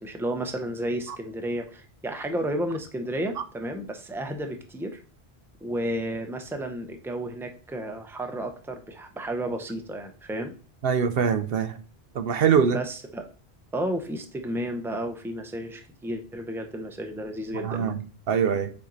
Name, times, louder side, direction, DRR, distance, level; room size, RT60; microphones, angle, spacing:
voice 1, 0.0-5.0 5.6-10.5 12.7-13.3 13.7-18.0, right 1 dB, 5° right, 0.7 m, -32 dB
voice 2, 10.8-11.8 12.1-12.8 17.6-17.9 18.3-18.7, right 7 dB, 70° right, 0.8 m, -23 dB
7.3 x 4.5 x 3.9 m
omnidirectional pair, 1.1 m